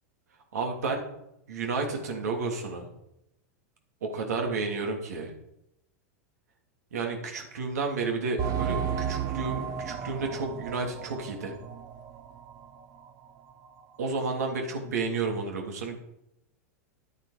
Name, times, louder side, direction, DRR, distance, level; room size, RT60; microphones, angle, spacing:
voice 1, 0.5-1.0 1.5-2.9 4.0-5.3 6.9-8.8 9.1-11.6 14.0-16.0, right 4 dB, 80° right, 2 dB, 3.0 m, -31 dB
sound 1, 8.4-12.7 13.0-13.1 13.6-13.7, right 8 dB, 40° right, 1.1 m, -33 dB
11.5 x 8.9 x 5.1 m, 0.81 s
hypercardioid pair, 105°, 9 cm